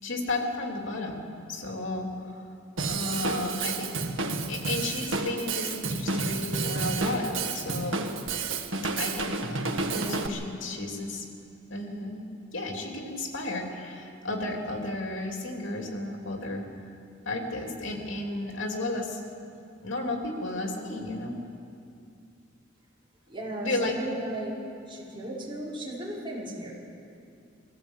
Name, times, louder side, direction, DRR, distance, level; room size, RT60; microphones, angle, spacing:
voice 1, 0.0-2.5 2.9-4.0 4.5-8.1 9.0-11.3 11.7-12.3 12.5-16.6 17.2-19.2 19.8-21.4 23.6-23.9, left 2 dB, 70° left, 2 dB, 3.1 m, -33 dB
Drum kit / Drum, 2.8-10.3, right 3 dB, 75° right, 1.5 m, -30 dB
voice 2, 23.3-24.5 24.9-26.7, right 1 dB, 25° right, -6 dB, 5.7 m, -35 dB
22.5 x 15.0 x 8.2 m, 2.5 s
head